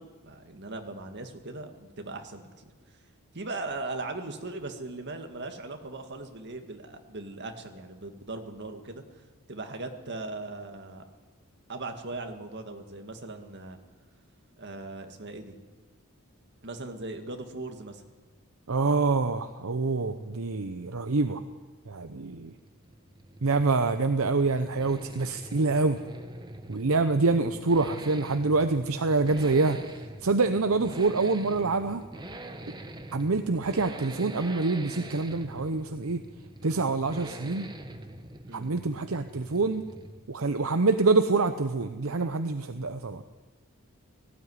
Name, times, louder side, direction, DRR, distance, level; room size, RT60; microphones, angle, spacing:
voice 1, 0.0-2.7 3.3-9.0 9.5-11.0 11.7-13.8 14.6-15.6 16.6-18.0 38.5-38.7, right 2 dB, 55° right, 5 dB, 2.1 m, -39 dB
voice 2, 18.7-21.4 21.9-22.5 23.4-26.0 26.7-29.8 30.2-32.0 33.1-36.2 36.6-37.7 38.5-39.8 40.3-43.2, right 3 dB, 70° right, 9 dB, 0.8 m, -26 dB
Accelerating revving vroom, 22.2-40.3 40.6-40.7, right 1 dB, 20° right, 1.2 m, -44 dB
18.0 x 15.5 x 9.6 m, 1.3 s
head